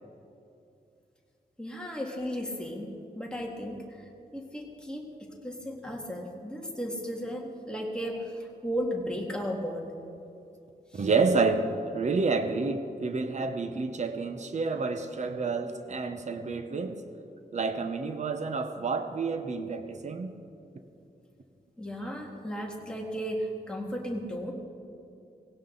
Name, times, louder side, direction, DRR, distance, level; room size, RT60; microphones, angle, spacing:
voice 1, 1.6-10.0 10.9-11.1 21.8-24.5, equal, 5° left, -1 dB, 1.9 m, -35 dB
voice 2, 10.9-11.7 11.9-17.0 17.5-20.4, right 4 dB, 45° right, 8 dB, 0.8 m, -29 dB
18.5 x 17.0 x 3.9 m, 2.7 s
wide cardioid pair, 170°, 16 cm